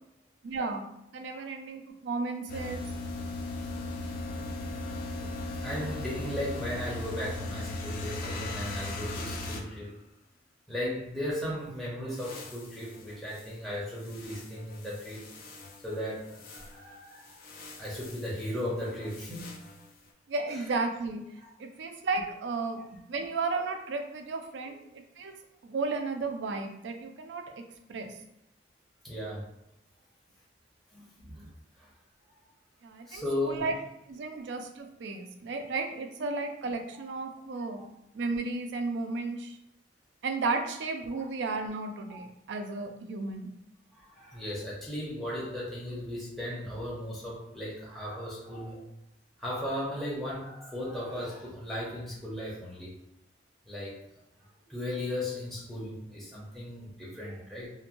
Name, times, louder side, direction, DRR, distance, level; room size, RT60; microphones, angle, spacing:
voice 1, 0.4-0.9 1.1-2.9 20.3-21.2 21.6-25.3 25.6-27.5 27.9-28.1 32.8-33.8 34.1-37.8 38.1-39.6 40.2-43.5, right 3 dB, 75° right, 5 dB, 0.4 m, -34 dB
sound 1, 2.5-9.7 12.1-13.4 14.0-15.9 16.3-16.7 17.3-18.4 18.8-19.8, left 2 dB, 55° left, 0.4 m, -38 dB
voice 2, 5.5-9.9 10.7-15.2 15.8-17.4 17.8-19.5 21.4-21.5 23.1-23.2 29.0-29.5 30.9-31.5 31.8-31.9 33.1-33.7 34.3-34.4 37.7-37.9 41.1-41.2 42.7-42.8 43.9-48.8 49.4-52.9 53.7-53.9 54.7-57.7, left 1 dB, ahead, -8 dB, 0.7 m, -36 dB
2.9 x 2.1 x 2.5 m, 0.82 s
head